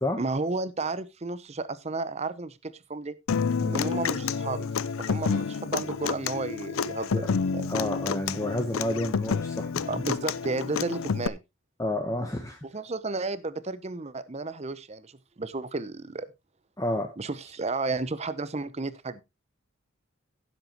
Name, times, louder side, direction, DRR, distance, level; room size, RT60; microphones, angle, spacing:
voice 1, 0.2-3.2 3.7-4.7 5.0-7.7 9.9-11.4 12.6-16.3 17.2-19.2, right 3 dB, 30° right, 0.7 m, -33 dB
Human voice / Acoustic guitar, 3.3-11.3, left 5 dB, 75° left, 0.5 m, -29 dB
voice 2, 7.6-10.0 11.8-12.6 16.8-17.1, left 1 dB, 15° left, 1.0 m, -30 dB
15.5 x 7.5 x 2.9 m
head